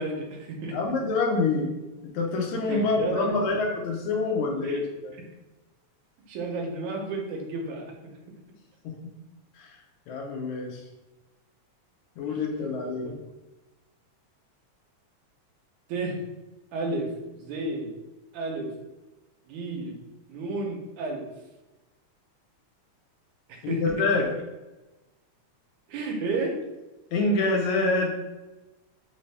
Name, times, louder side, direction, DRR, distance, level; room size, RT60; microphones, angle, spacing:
voice 1, 0.0-0.8 2.7-3.6 4.6-4.8 6.3-7.9 12.6-12.7 13.1-13.2 15.9-16.2 16.7-17.9 18.3-18.7 19.5-20.0 20.3-21.2 23.5-24.1 25.9-26.6, right 3 dB, 85° right, 1 dB, 2.2 m, -32 dB
voice 2, 0.7-1.8 2.0-5.1 8.8-8.9 9.6-9.7 10.1-10.8 12.2-13.1 23.6-24.3 27.1-28.1, left 3 dB, 80° left, 0 dB, 2.1 m, -26 dB
5.2 x 2.7 x 3.3 m, 1.0 s
omnidirectional pair, 3.4 m